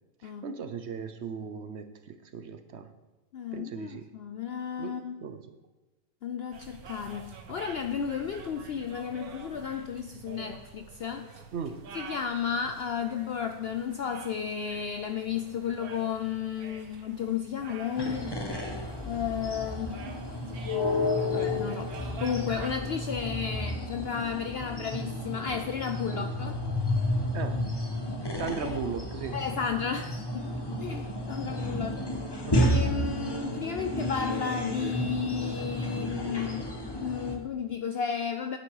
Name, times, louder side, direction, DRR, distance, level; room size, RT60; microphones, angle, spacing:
voice 1, 0.2-2.9 3.5-4.1 4.8-5.5 11.5-11.9 26.1-26.3 27.3-27.7 28.3-29.4 32.5-32.6, right 6 dB, 60° right, 8 dB, 0.8 m, -37 dB
voice 2, 3.3-5.3 6.2-11.4 11.9-18.4 19.1-20.1 21.3-26.6 28.5-28.8 29.3-30.5 30.8-32.1 32.5-38.6, left 7 dB, 65° left, 8 dB, 0.6 m, -33 dB
sound 1, 6.5-22.7, right 5 dB, 85° right, 1.5 m, -47 dB
sound 2, 17.9-37.3, left 1 dB, 20° left, 1.0 m, -31 dB
9.2 x 9.0 x 4.8 m, 1.2 s
omnidirectional pair, 1.5 m